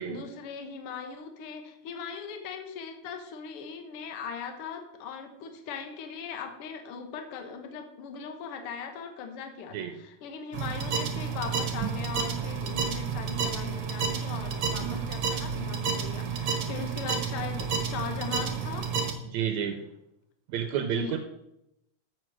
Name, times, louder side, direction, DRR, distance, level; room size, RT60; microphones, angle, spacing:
voice 1, 0.1-18.9 20.8-21.2, left 6 dB, 60° left, 6 dB, 1.8 m, -39 dB
sound 1, 10.5-19.1, right 6 dB, 60° right, 1.8 m, -30 dB
voice 2, 19.3-19.8 20.5-21.2, right 9 dB, 80° right, 6 dB, 1.9 m, -30 dB
7.7 x 6.6 x 6.1 m, 0.84 s
omnidirectional pair, 3.4 m